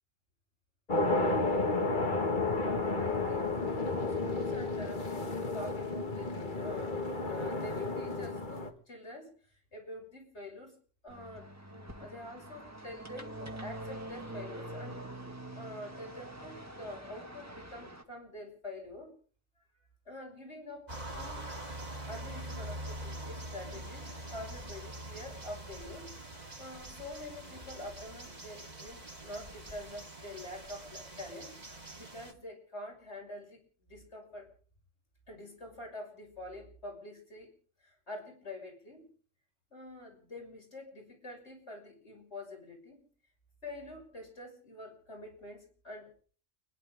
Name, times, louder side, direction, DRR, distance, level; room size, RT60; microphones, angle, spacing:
sound 1, 0.9-8.7, left 3 dB, 40° left, 2.0 m, -32 dB
voice 1, 2.5-10.8 11.0-19.1 20.0-21.5 22.1-31.5 31.9-34.5 35.3-37.5 37.8-39.1 39.7-43.0 43.6-46.2, left 1 dB, 60° left, 1 dB, 6.6 m, -46 dB
sound 2, 11.1-18.0, right 1 dB, 10° right, 1.9 m, -45 dB
sound 3, 20.9-32.3, right 1 dB, 35° right, 2.5 m, -44 dB
30.0 x 11.0 x 3.7 m, 0.43 s
omnidirectional pair, 1.3 m